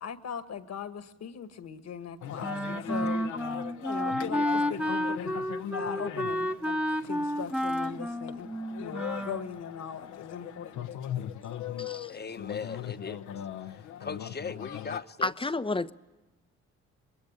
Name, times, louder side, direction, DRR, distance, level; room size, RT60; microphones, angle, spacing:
voice 1, 0.0-3.2 3.9-5.4 5.7-8.5 8.8-10.9, left 7 dB, 60° left, 1.8 m, -39 dB
sound 1, 2.2-15.0, left 10 dB, 75° left, 1.1 m, -40 dB
Wind instrument woodwind instrument, 2.4-9.5, equal, 5° right, 1.3 m, -31 dB
voice 2, 2.9-3.4 12.1-13.2 13.7-15.3, left 5 dB, 35° left, 1.3 m, -39 dB
voice 3, 11.8-12.1 15.2-15.9, left 2 dB, 15° left, 0.9 m, -30 dB
24.0 x 21.5 x 8.8 m
supercardioid pair, 55°, 30 cm